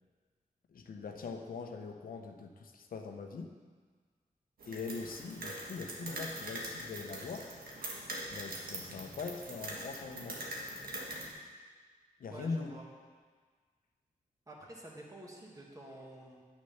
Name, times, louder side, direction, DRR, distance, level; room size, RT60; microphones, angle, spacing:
voice 1, 0.7-3.5 4.7-7.5 8.3-10.4 12.2-12.7, left 4 dB, 80° left, 4 dB, 0.9 m, -42 dB
sound 1, 4.6-11.3, right 1 dB, 85° right, 1.6 m, -43 dB
voice 2, 12.3-12.8 14.5-16.4, right 1 dB, 25° right, -2 dB, 1.9 m, -49 dB
9.5 x 6.3 x 5.8 m, 1.6 s
wide cardioid pair, 100°, 15 cm